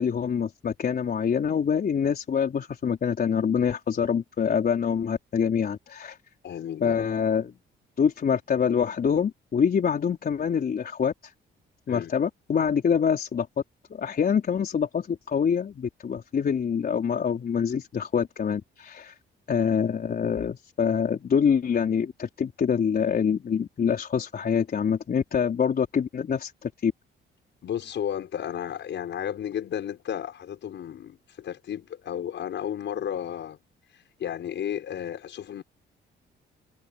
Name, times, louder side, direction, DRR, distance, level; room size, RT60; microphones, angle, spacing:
voice 1, 0.0-6.2 6.8-7.5 8.0-11.3 11.9-13.5 13.9-19.1 19.5-26.9, left 7 dB, 50° left, 4.1 m, -25 dB
voice 2, 6.4-7.0 11.9-12.1 27.6-33.6 33.9-35.6, left 9 dB, 65° left, 6.4 m, -33 dB
cardioid pair, 90°, 20 cm